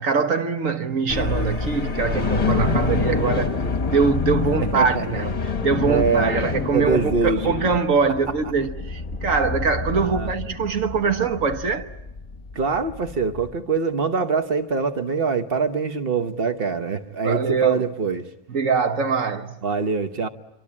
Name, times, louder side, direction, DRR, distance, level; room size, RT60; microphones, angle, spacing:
voice 1, 0.0-3.6 3.9-11.9 17.2-17.8 18.5-19.6, right 5 dB, 75° right, 1.6 m, -23 dB
sound 1, 1.1-13.5, left 4 dB, 30° left, 1.1 m, -27 dB
voice 2, 4.6-5.1 5.8-6.3 6.7-7.5 10.0-10.3 12.5-18.3 19.6-20.3, right 4 dB, 45° right, 1.4 m, -24 dB
26.0 x 25.0 x 8.7 m
omnidirectional pair, 1.4 m